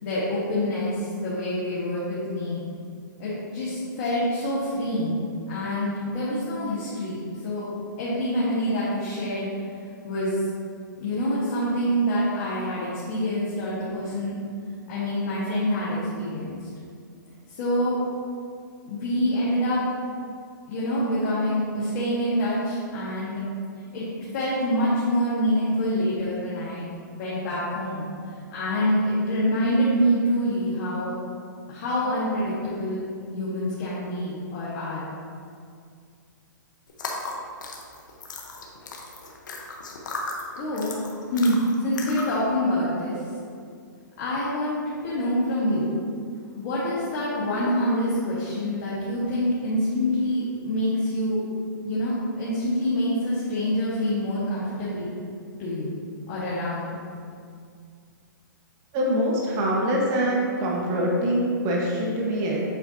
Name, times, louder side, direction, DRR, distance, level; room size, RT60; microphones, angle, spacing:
voice 1, 0.0-2.6 3.2-7.7 8.0-9.5 10.0-10.4 11.0-14.4 14.9-16.6 17.5-17.9 18.8-19.8 20.7-23.4 23.9-24.0 24.3-26.9 27.1-28.1 28.5-31.1 31.7-33.0 33.3-35.0 40.6-41.0 41.3-43.2 44.2-45.9 46.6-51.4 51.8-55.1 55.6-55.9 56.3-57.0, equal, 40° left, -9 dB, 1.5 m, -26 dB
sound 1, 36.9-42.4, left 3 dB, 65° left, 1.0 m, -36 dB
voice 2, 58.9-62.6, equal, 30° right, -3 dB, 1.3 m, -24 dB
8.1 x 4.5 x 2.8 m, 2.2 s
hypercardioid pair, 145°, 11 cm